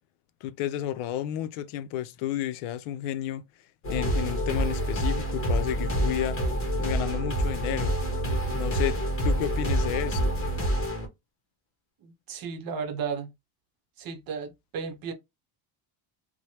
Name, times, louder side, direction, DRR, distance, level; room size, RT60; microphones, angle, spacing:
voice 1, 0.4-3.4 3.9-6.4 6.8-7.9 8.5-10.4, left 12 dB, 90° left, 0.6 m, -31 dB
sound 1, 3.8-11.1, right 1 dB, 25° left, 0.9 m, -27 dB
voice 2, 12.0-13.3 14.0-15.1, right 6 dB, 45° right, 0.8 m, -34 dB
3.1 x 2.1 x 2.8 m
cardioid pair, 150°, 49 cm